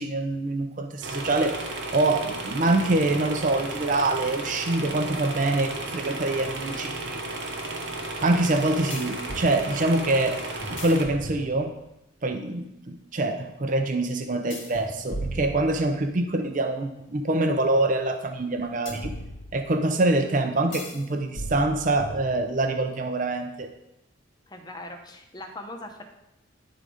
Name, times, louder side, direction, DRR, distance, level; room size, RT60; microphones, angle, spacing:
voice 1, 0.0-7.2 8.2-10.4 10.7-11.7 12.2-19.1 19.5-23.7, right 2 dB, 40° right, 6 dB, 0.6 m, -25 dB
sound 1, 1.0-11.1, right 2 dB, 60° right, 1.0 m, -34 dB
sound 2, 8.9-9.5 10.6-11.9 14.5-16.2 18.9-19.9 20.7-21.0 21.4-22.7, equal, 75° left, 1.7 m, -37 dB
voice 2, 24.5-26.0, left 1 dB, 20° left, 4 dB, 0.8 m, -40 dB
10.5 x 3.8 x 5.0 m, 0.87 s
head